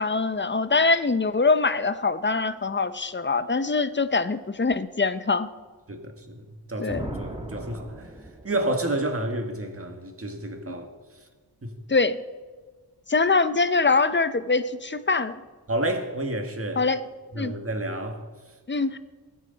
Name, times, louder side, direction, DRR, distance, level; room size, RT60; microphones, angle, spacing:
voice 1, 0.0-5.5 6.8-7.1 10.7-10.8 11.9-12.2 13.1-15.4 16.8-17.0 17.4-17.5 18.7-19.0, left 4 dB, 30° left, 0.6 m, -23 dB
voice 2, 5.9-8.1 8.4-10.9 11.6-11.8 15.7-16.8 17.3-18.3 18.7-18.8, right 1 dB, 35° right, 1.7 m, -30 dB
sound 1, 6.9-8.9, right 1 dB, 15° right, 1.8 m, -37 dB
21.0 x 9.4 x 4.0 m
wide cardioid pair, 90°, 41 cm